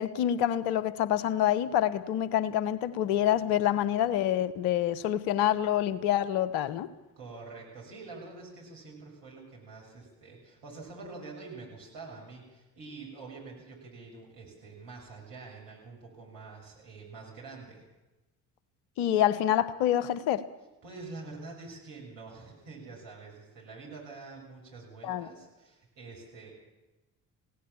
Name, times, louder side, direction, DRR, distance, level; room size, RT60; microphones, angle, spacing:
voice 1, 0.0-6.9 19.0-20.4 25.0-25.3, left 11 dB, 70° left, 17 dB, 1.2 m, -27 dB
voice 2, 7.2-17.8 20.8-26.5, right 3 dB, 65° right, -2 dB, 7.1 m, -46 dB
27.0 x 17.0 x 7.2 m, 1.1 s
figure-of-eight pair, 45°, 45 cm